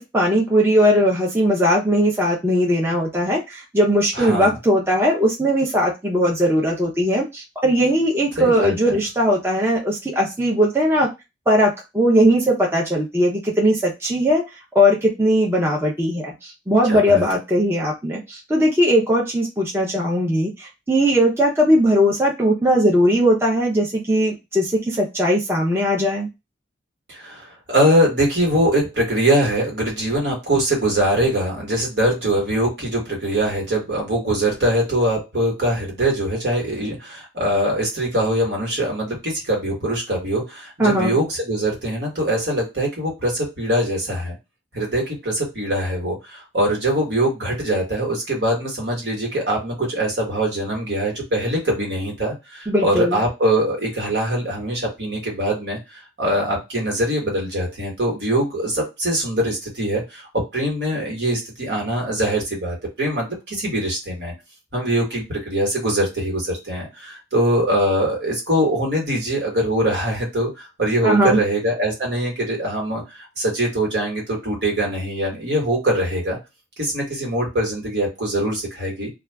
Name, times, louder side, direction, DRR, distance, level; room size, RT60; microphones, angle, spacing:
voice 1, 0.0-11.1 11.5-14.4 14.7-26.3 40.8-41.1 52.7-53.2 71.0-71.4, equal, 15° right, -3 dB, 0.5 m, -19 dB
voice 2, 4.1-4.6 8.4-9.0 16.9-17.2 27.1-44.3 44.7-64.3 64.7-76.4 76.8-79.1, right 1 dB, 65° right, -1 dB, 1.4 m, -22 dB
2.4 x 2.3 x 3.3 m, 0.23 s
head